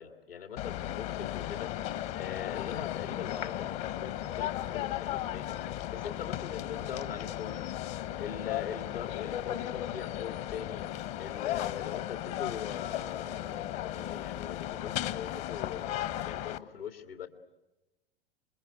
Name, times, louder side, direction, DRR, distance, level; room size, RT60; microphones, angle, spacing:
voice 1, 0.0-1.7 2.2-5.6 5.9-7.8 8.2-10.9 11.2-17.3, left 8 dB, 75° left, 8 dB, 2.4 m, -42 dB
sound 1, 0.6-16.6, left 13 dB, 45° left, 1.2 m, -36 dB
27.0 x 22.0 x 9.5 m, 1.0 s
figure-of-eight pair, 90°, 29 cm